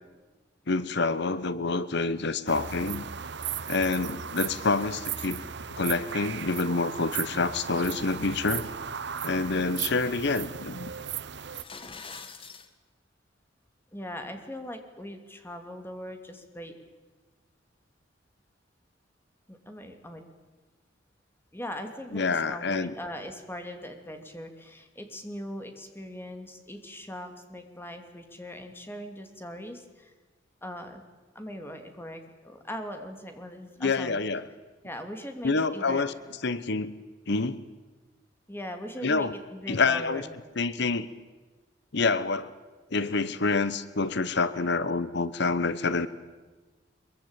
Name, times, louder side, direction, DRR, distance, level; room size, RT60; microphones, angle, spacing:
voice 1, 0.7-3.1 3.7-5.4 5.7-8.7 9.2-10.9 22.1-22.9 33.8-34.5 35.4-36.1 36.4-36.9 37.3-37.6 39.0-39.3 39.7-40.3 40.6-41.1 41.9-42.5 42.9-46.1, left 3 dB, 65° left, 15 dB, 1.0 m, -27 dB
sound 1, 2.5-11.6, right 8 dB, 65° right, 1.0 m, -36 dB
sound 2, 11.4-12.7, left 4 dB, 30° left, 1.7 m, -43 dB
voice 2, 13.9-16.7 19.5-20.2 21.5-30.1 30.6-31.0 31.3-34.2 34.8-36.0 38.5-40.3, equal, 10° left, 6 dB, 2.7 m, -40 dB
23.5 x 23.0 x 9.0 m, 1.3 s
head